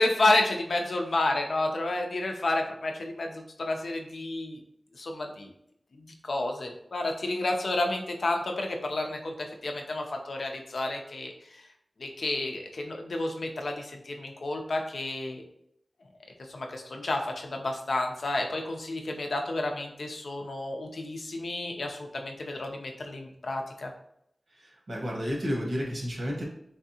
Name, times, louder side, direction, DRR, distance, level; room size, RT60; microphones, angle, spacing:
voice 1, 0.0-4.6 5.0-5.5 6.0-11.3 12.0-15.4 16.5-23.9, left 2 dB, 80° left, 3 dB, 0.5 m, -30 dB
voice 2, 24.6-26.4, equal, 80° right, -1 dB, 1.0 m, -31 dB
3.6 x 3.3 x 2.7 m, 0.74 s
cardioid pair, 45°, 0 cm